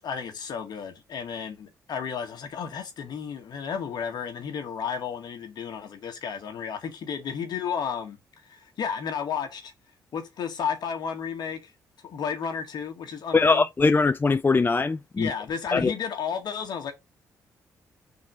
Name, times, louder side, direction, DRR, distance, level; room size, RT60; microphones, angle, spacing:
voice 1, 0.0-8.2 8.5-9.7 10.1-11.7 12.0-13.6 15.2-17.0, left 7 dB, 55° left, 1.8 m, -32 dB
voice 2, 13.3-15.3 15.7-15.9, left 4 dB, 25° left, 0.5 m, -21 dB
5.8 x 4.1 x 6.2 m
figure-of-eight pair, 40°, 9 cm